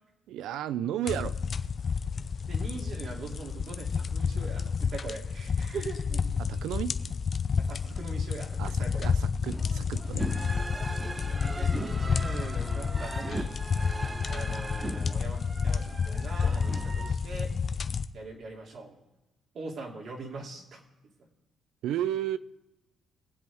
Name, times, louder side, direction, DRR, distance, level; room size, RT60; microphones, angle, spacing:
voice 1, 0.3-1.3 6.5-6.9 8.6-8.7 9.0-9.2 9.4-10.3 21.8-22.4, right 11 dB, 85° right, 15 dB, 0.5 m, -32 dB
sound 1, 1.1-18.1, left 6 dB, 45° left, 0.6 m, -30 dB
voice 2, 2.4-6.2 7.6-9.1 11.0-13.6 14.3-17.5 18.1-19.0 19.5-20.8 21.2-21.3, right 3 dB, 60° right, -2 dB, 2.9 m, -42 dB
sound 2, 9.5-17.1, right 2 dB, 20° right, 0.8 m, -39 dB
22.0 x 7.9 x 3.6 m, 1.0 s
cardioid pair, 90°, 0 cm